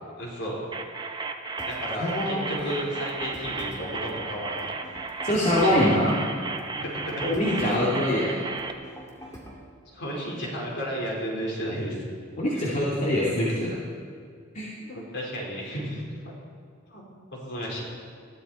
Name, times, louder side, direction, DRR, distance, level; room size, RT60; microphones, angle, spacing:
voice 1, 0.2-0.6 1.7-4.7 5.5-5.9 6.7-7.2 7.6-8.0 9.3-9.4 9.9-12.0 12.5-12.8 14.8-16.3 16.9-17.0 17.3-17.8, equal, 60° left, -3 dB, 4.6 m, -33 dB
sound 1, 0.7-8.7, right 4 dB, 20° right, 0.9 m, -34 dB
sound 2, 1.6-9.6, equal, 15° left, 2.3 m, -44 dB
voice 2, 2.0-2.6 5.2-6.2 7.2-8.5 12.4-13.8 14.5-14.7, left 1 dB, 35° left, -7 dB, 2.6 m, -24 dB
20.5 x 14.0 x 4.4 m, 2.2 s
head